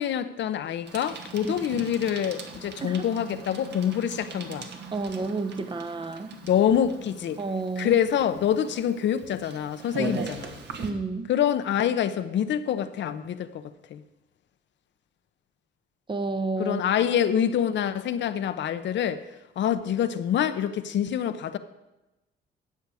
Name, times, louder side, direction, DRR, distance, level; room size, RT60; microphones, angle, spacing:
voice 1, 0.0-4.7 6.4-7.4 7.8-10.6 11.3-13.6 13.9-14.0 16.6-19.2 19.6-21.6, left 9 dB, 65° left, 0.7 m, -26 dB
Bicycle, 0.9-10.9, right 4 dB, 60° right, 1.3 m, -40 dB
voice 2, 1.4-1.8 2.8-3.0 4.9-6.3 7.4-7.9 10.0-10.3 10.8-11.3 16.1-16.8, right 3 dB, 25° right, 0.7 m, -31 dB
13.0 x 8.1 x 4.9 m
cardioid pair, 90°, 20 cm